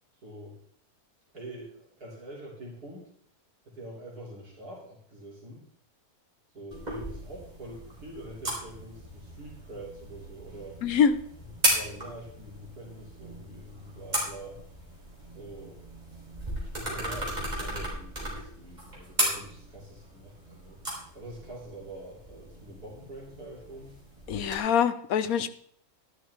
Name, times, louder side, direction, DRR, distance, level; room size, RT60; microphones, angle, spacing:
voice 1, 0.2-0.6 1.3-3.1 3.6-5.6 6.5-10.8 11.6-14.6 15.3-15.9 16.6-20.8 21.1-24.0, right 1 dB, 75° right, -3 dB, 3.2 m, -45 dB
sound 1, 6.7-24.6, right 1 dB, 25° right, 4.0 m, -36 dB
voice 2, 10.8-11.2 24.3-25.5, left 7 dB, 70° left, 12 dB, 1.2 m, -24 dB
12.0 x 11.0 x 3.4 m, 0.62 s
omnidirectional pair, 1.6 m